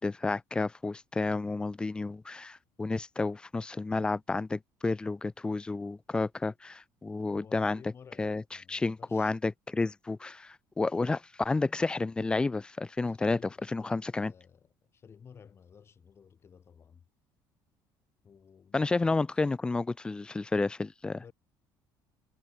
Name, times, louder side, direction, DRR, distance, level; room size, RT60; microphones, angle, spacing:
voice 1, 0.0-7.8 8.2-8.4 8.7-13.4 13.7-14.3 18.7-21.2, left 3 dB, 10° left, 0.3 m, -31 dB
voice 2, 7.3-9.4 13.0-17.1 18.2-19.3 21.2-21.3, left 7 dB, 30° left, 5.9 m, -55 dB
cardioid pair, 145°, 9 cm